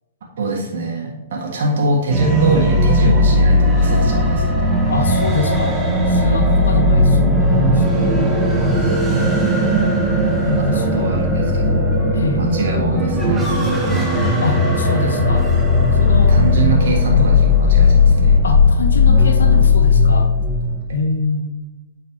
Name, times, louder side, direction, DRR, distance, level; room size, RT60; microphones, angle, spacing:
voice 1, 0.4-4.8 10.6-12.0 12.4-14.2 16.3-18.4, right 3 dB, 60° right, -1 dB, 1.6 m, -23 dB
sound 1, 2.1-20.8, left 2 dB, 10° right, 1.7 m, -16 dB
voice 2, 4.9-5.8 6.1-8.1 10.5-11.2 12.1-12.5 14.4-15.5 16.0-16.4 17.0-17.2 18.4-20.3 20.9-21.5, left 3 dB, 75° left, 6 dB, 0.9 m, -25 dB
8.6 x 5.8 x 3.1 m, 1.1 s
figure-of-eight pair, 115°, 0 cm